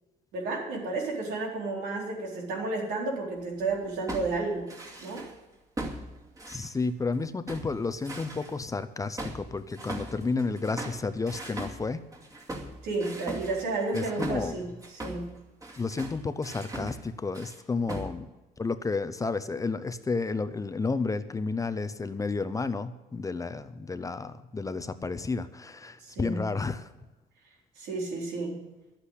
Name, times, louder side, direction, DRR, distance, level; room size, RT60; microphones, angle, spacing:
voice 1, 0.3-4.7 5.0-5.2 12.8-14.7 14.9-15.3 26.0-26.4 27.8-28.6, right 3 dB, 85° right, -1 dB, 4.2 m, -32 dB
sound 1, 3.6-5.4 5.8-7.2 7.5-8.6 9.2-17.1 17.3-17.6 17.9-18.1, right 1 dB, 20° right, 2.4 m, -39 dB
voice 2, 6.5-12.0 13.9-14.5 15.8-18.3 18.6-26.9, left 4 dB, 20° left, 12 dB, 0.6 m, -31 dB
11.5 x 8.4 x 8.1 m, 1.1 s
cardioid pair, 110°, 17 cm